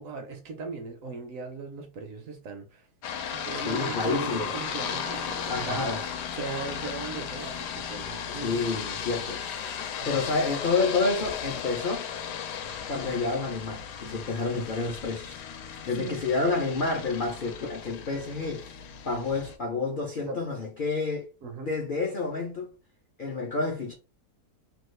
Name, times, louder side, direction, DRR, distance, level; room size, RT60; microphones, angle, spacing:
voice 1, 0.0-2.9 3.2-6.0 6.3-8.6 10.0-10.2 16.0-16.3 20.1-20.4 21.4-21.7, right 4 dB, 70° right, 0.9 m, -38 dB
sound 1, 3.0-19.6, left 8 dB, 90° left, 1.2 m, -36 dB
voice 2, 3.6-4.5 5.5-6.0 8.3-9.4 10.1-12.1 12.9-15.4 15.8-18.6 19.1-21.3 21.6-22.7 23.2-23.9, left 3 dB, 70° left, 0.5 m, -29 dB
sound 2, 3.7-6.7 7.5-8.0, right 9 dB, 90° right, 1.2 m, -44 dB
3.0 x 2.3 x 3.1 m
omnidirectional pair, 1.7 m